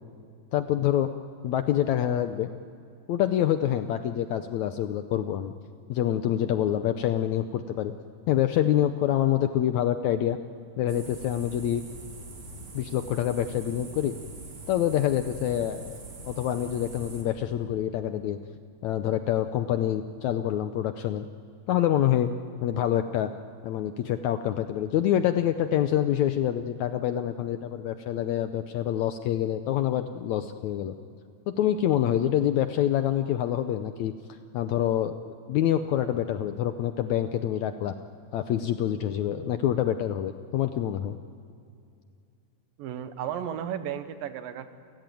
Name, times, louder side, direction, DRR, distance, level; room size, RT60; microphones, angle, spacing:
voice 1, 0.5-1.1 1.4-2.5 3.1-5.5 5.9-7.9 8.3-10.4 10.8-11.8 12.7-14.1 14.7-18.4 18.8-21.3 21.7-22.3 22.6-23.3 23.6-31.0 31.5-34.1 34.5-38.0 38.3-41.2, left 11 dB, 75° left, 9 dB, 1.7 m, -26 dB
sound 1, 10.9-17.2, right 2 dB, 40° right, 3.8 m, -43 dB
voice 2, 42.8-44.7, right 9 dB, 80° right, 10 dB, 2.9 m, -34 dB
29.5 x 16.0 x 9.1 m, 2.5 s
omnidirectional pair, 4.0 m